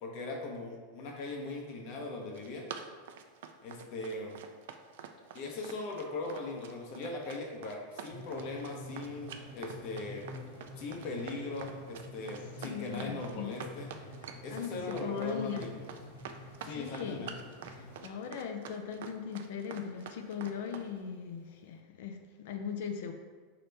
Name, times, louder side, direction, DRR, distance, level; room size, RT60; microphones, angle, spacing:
voice 1, 0.0-2.6 3.6-4.4 5.3-10.2 10.8-13.9 14.4-15.9 16.6-17.5, left 2 dB, 45° left, 1 dB, 0.8 m, -40 dB
Run, 2.1-20.9, right 8 dB, 75° right, 0.4 m, -46 dB
sound 1, 8.1-18.0, left 2 dB, 85° left, 1.0 m, -48 dB
voice 2, 12.6-13.6 14.5-15.7 16.3-17.3 17.7-23.1, left 7 dB, 70° left, 5 dB, 0.4 m, -39 dB
5.1 x 2.9 x 3.3 m, 1.4 s
supercardioid pair, 160°, 0 cm